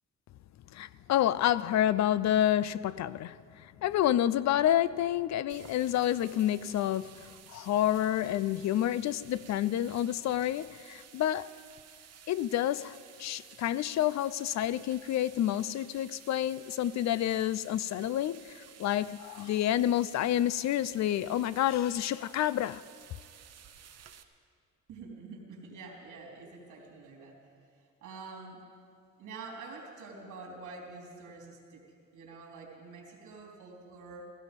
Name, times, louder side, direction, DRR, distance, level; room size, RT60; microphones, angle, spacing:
voice 1, 0.7-11.5 12.3-22.8, left 12 dB, 65° left, 0.5 m, -29 dB
sound 1, 5.5-24.2, right 8 dB, 55° right, 1.0 m, -54 dB
voice 2, 24.9-27.4 28.0-28.6 29.2-31.8 32.1-34.2, right 3 dB, 85° right, 3.5 m, -46 dB
16.5 x 16.0 x 5.3 m
cardioid pair, 90°, 30 cm